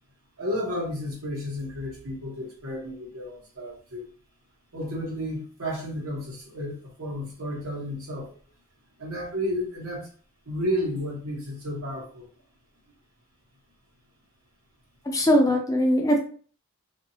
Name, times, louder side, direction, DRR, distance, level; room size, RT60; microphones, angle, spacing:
voice 1, 0.4-4.1 4.7-8.3 9.0-10.1 10.5-12.3, equal, 75° right, -1 dB, 1.2 m, -32 dB
voice 2, 15.1-16.2, equal, 15° left, 1 dB, 0.5 m, -20 dB
2.8 x 2.7 x 2.7 m, 0.42 s
head